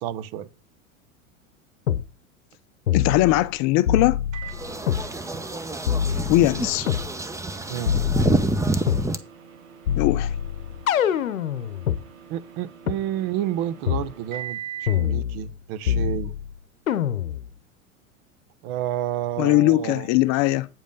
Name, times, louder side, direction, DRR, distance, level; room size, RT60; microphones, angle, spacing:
voice 1, 0.0-0.5 7.7-7.9 12.3-14.6 14.9-16.3 18.6-20.1, right 12 dB, 50° right, 0.9 m, -30 dB
sound 1, 1.9-2.1 2.9-3.5 3.9-5.1 5.9-7.1 7.9-9.1 9.9-12.0 12.9-13.0 13.9-14.1 14.9-15.6 15.9-16.5 16.9-17.5, left 9 dB, 85° left, 0.8 m, -25 dB
voice 2, 2.9-4.2 6.3-6.9 10.0-10.3 19.4-20.7, left 17 dB, 45° left, 0.6 m, -20 dB
Microwave oven, 4.3-15.1, right 9 dB, 75° right, 1.8 m, -43 dB
sound 2, 4.5-9.2, right 2 dB, 10° right, 0.8 m, -27 dB
9.0 x 5.2 x 5.4 m
hypercardioid pair, 95°, 40 cm